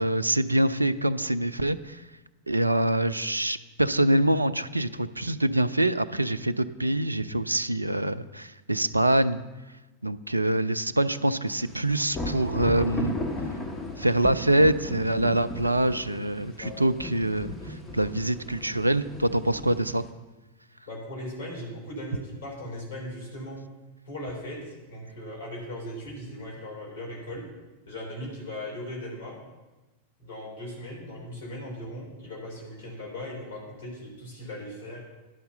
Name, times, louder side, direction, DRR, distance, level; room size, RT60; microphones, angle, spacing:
voice 1, 0.0-2.0 2.5-9.4 10.0-13.2 14.0-20.0, right 1 dB, 85° right, 16 dB, 0.4 m, -25 dB
sound 1, 11.6-20.1, left 1 dB, 20° left, 1.4 m, -36 dB
voice 2, 16.4-16.7 20.9-23.6 24.1-27.4 27.9-29.3 30.2-35.0, left 1 dB, 55° left, -2 dB, 3.7 m, -38 dB
11.0 x 5.7 x 6.5 m, 1.1 s
figure-of-eight pair, 90°, 0 cm